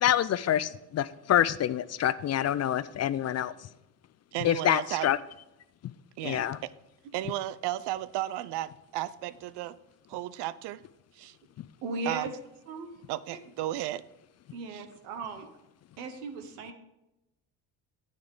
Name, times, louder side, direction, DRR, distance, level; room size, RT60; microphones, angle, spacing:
voice 1, 0.0-3.5 4.4-5.2 5.8-5.9 6.2-6.6, left 11 dB, 40° left, 16 dB, 0.4 m, -26 dB
voice 2, 4.3-5.1 6.2-6.7 7.1-9.8 10.1-10.8 11.1-11.4 12.1-12.3 13.1-14.0 14.7-14.8, right 14 dB, 65° right, 17 dB, 0.6 m, -34 dB
voice 3, 11.8-12.3 12.7-12.9 13.3-13.4 14.5-15.5 16.0-16.7, right 3 dB, 85° right, 7 dB, 1.3 m, -37 dB
9.3 x 8.1 x 3.7 m, 0.92 s
supercardioid pair, 65°, 43 cm